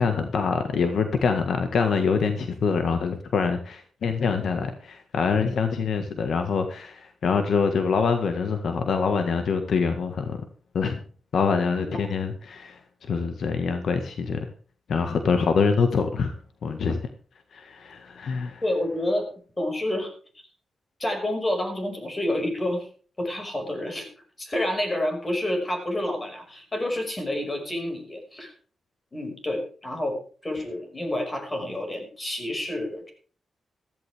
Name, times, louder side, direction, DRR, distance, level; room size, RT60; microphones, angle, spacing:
voice 1, 0.0-10.4 10.7-11.0 11.3-14.5 14.9-16.3 16.6-17.1 17.5-18.6, left 5 dB, 70° left, 7 dB, 1.6 m, -25 dB
voice 2, 18.6-19.3 19.6-20.1 21.0-22.9 23.2-24.1 24.4-28.5 29.1-33.1, left 1 dB, 25° left, 4 dB, 5.6 m, -29 dB
15.0 x 14.5 x 3.5 m, 0.41 s
cardioid pair, 100°, 0 cm